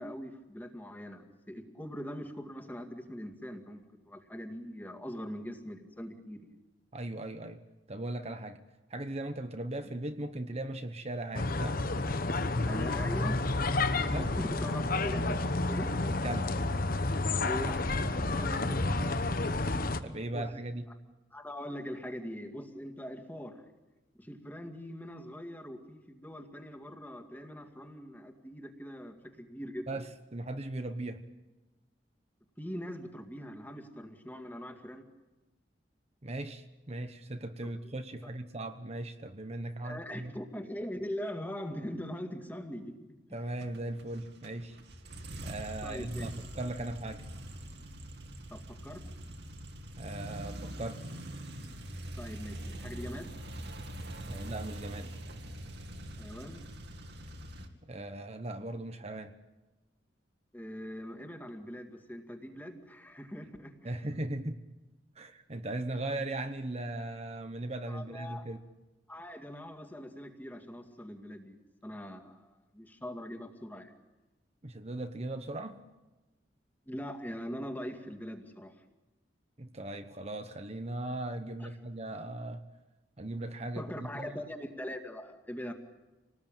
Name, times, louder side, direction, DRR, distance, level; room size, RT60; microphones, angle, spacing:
voice 1, 0.0-6.5 12.7-13.4 13.9-15.9 17.5-17.8 18.3-19.5 20.3-20.4 21.3-23.6 24.2-30.0 32.6-35.0 39.8-43.0 43.3-43.4 45.8-46.3 48.5-49.0 52.2-53.3 56.2-56.6 60.5-64.0 67.9-68.5 69.1-74.0 76.9-78.7 81.6-81.7 83.8-85.7, equal, 10° left, 5 dB, 2.2 m, -42 dB
voice 2, 6.9-7.6 7.9-8.6 8.9-11.8 13.8-14.4 16.1-16.5 20.0-20.9 29.9-31.2 36.2-40.3 43.3-44.8 45.4-46.3 46.5-47.2 50.0-51.0 54.2-55.1 57.8-59.3 63.8-64.6 65.2-68.6 74.6-75.8 79.6-82.6 83.2-84.4, right 1 dB, 35° right, 8 dB, 1.1 m, -38 dB
sound 1, 11.3-20.0, left 2 dB, 50° left, 1.2 m, -30 dB
sound 2, 43.6-57.7, right 1 dB, 65° right, 2.5 m, -43 dB
27.5 x 19.5 x 9.0 m, 1.1 s
head